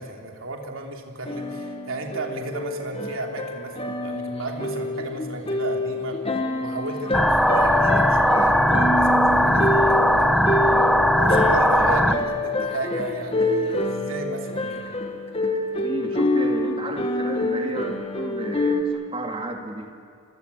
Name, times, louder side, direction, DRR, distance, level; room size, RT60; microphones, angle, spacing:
voice 1, 0.0-6.3 6.6-10.4 11.2-14.9, right 2 dB, 70° right, 2 dB, 3.2 m, -34 dB
sound 1, 1.3-18.8, left 2 dB, 25° left, 2.0 m, -27 dB
sound 2, 7.1-12.1, equal, ahead, 0.9 m, -19 dB
voice 2, 11.8-12.3 15.8-19.9, right 1 dB, 25° right, 3 dB, 2.7 m, -33 dB
28.5 x 24.0 x 8.5 m, 2.1 s
head